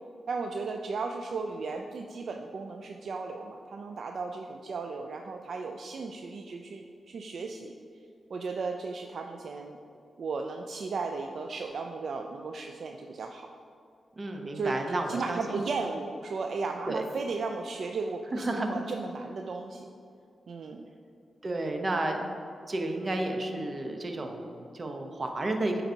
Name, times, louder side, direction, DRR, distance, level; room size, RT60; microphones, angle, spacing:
voice 1, 0.3-7.7 8.3-9.8 10.2-13.5 14.5-19.9 20.5-20.8, right 4 dB, 70° right, 3 dB, 0.3 m, -35 dB
voice 2, 14.2-15.6 16.9-17.0 18.3-18.7 21.4-22.2 22.7-25.8, right 2 dB, 45° right, 4 dB, 0.8 m, -31 dB
8.7 x 3.9 x 2.8 m, 2.4 s
cardioid pair, 50°, 0 cm